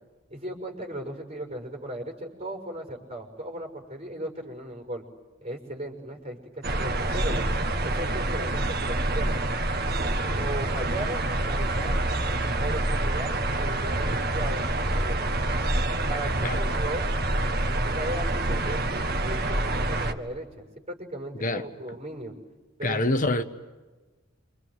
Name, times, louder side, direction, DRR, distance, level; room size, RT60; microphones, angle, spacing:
voice 1, 0.3-5.1 5.4-7.4 7.8-9.5 10.2-12.0 12.5-15.2 16.1-17.1 17.8-22.3 22.8-23.3, right 1 dB, 35° right, 6.1 m, -37 dB
sound 1, 6.6-20.1, right 2 dB, 55° right, 1.8 m, -27 dB
voice 2, 22.8-23.4, left 2 dB, 45° left, 1.2 m, -25 dB
29.0 x 26.0 x 8.0 m
head